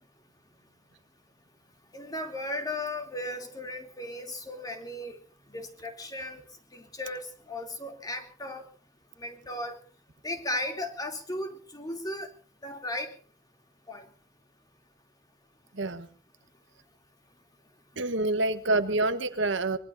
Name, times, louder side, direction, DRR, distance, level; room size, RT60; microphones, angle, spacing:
voice 1, 1.9-5.2 5.5-6.4 6.7-8.6 9.2-9.7 10.2-12.3 12.6-13.1 13.9-14.0, left 1 dB, 20° left, 5 dB, 3.0 m, -36 dB
voice 2, 15.7-16.1 18.0-19.8, right 2 dB, 70° right, 11 dB, 1.3 m, -27 dB
24.5 x 22.5 x 2.7 m, 0.37 s
head